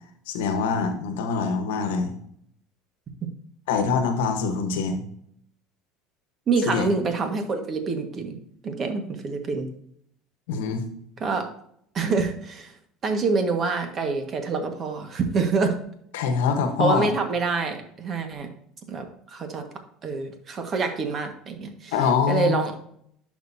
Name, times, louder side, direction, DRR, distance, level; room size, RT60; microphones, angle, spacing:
voice 1, 0.3-2.2 3.7-5.0 6.7-6.9 10.5-10.9 16.1-17.1 21.9-22.6, left 5 dB, 80° left, 7 dB, 1.1 m, -24 dB
voice 2, 6.5-8.3 8.6-9.7 11.2-11.5 11.9-12.7 13.0-15.7 16.8-18.5 18.9-19.6 20.0-21.9 22.3-22.7, right 4 dB, 40° right, 6 dB, 1.5 m, -26 dB
11.0 x 5.2 x 2.7 m, 0.68 s
hypercardioid pair, 75°, 0 cm